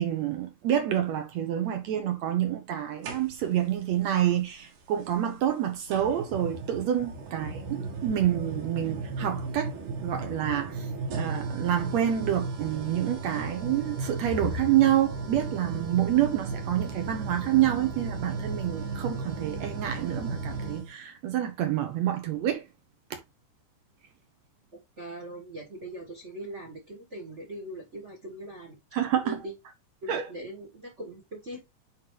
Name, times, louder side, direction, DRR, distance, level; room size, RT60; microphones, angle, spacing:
voice 1, 0.0-9.7 10.0-10.9 11.1-22.6 28.9-29.4 30.1-30.2, right 11 dB, 70° right, 1.9 m, -27 dB
sound 1, 3.0-3.7 5.0-5.1 5.9-20.9, right 3 dB, 90° right, 3.1 m, -35 dB
voice 2, 25.0-28.8 29.2-29.5 30.0-31.6, right 1 dB, 45° right, 0.9 m, -41 dB
9.7 x 3.2 x 3.0 m
omnidirectional pair, 3.7 m